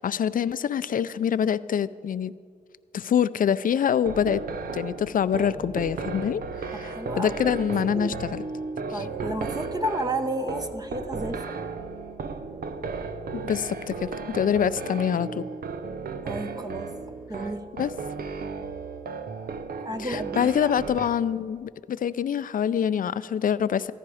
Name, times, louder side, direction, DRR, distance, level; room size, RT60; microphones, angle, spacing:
voice 1, 0.0-2.3 2.9-4.4 4.7-6.4 6.7-8.4 8.9-9.1 13.3-15.5 17.7-17.9 20.0-23.9, left 8 dB, 65° left, 15 dB, 0.5 m, -25 dB
sound 1, 4.0-21.1, right 4 dB, 80° right, 0.8 m, -35 dB
voice 2, 6.7-7.7 7.9-8.1 8.9-11.6 16.2-16.9 17.3-17.6 19.8-20.7, right 1 dB, 25° right, 7 dB, 0.9 m, -32 dB
15.0 x 13.5 x 4.9 m, 2.2 s
cardioid pair, 60°, 15 cm